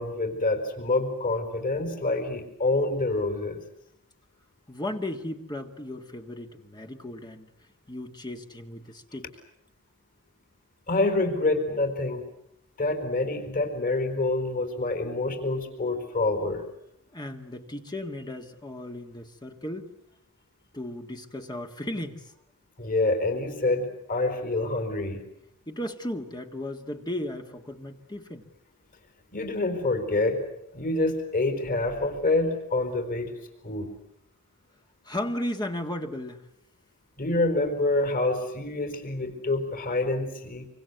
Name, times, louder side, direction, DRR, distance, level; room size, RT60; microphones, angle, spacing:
voice 1, 0.0-3.6 10.9-12.2 12.8-16.6 22.8-25.2 29.3-30.5 30.7-33.4 33.6-33.9 37.2-40.7, left 2 dB, 40° left, 7 dB, 4.6 m, -27 dB
voice 2, 4.7-7.5 7.9-9.3 17.1-19.9 20.7-22.3 25.7-28.4 35.0-36.5, left 1 dB, 20° left, 4 dB, 1.8 m, -35 dB
26.5 x 25.0 x 8.2 m, 0.76 s
head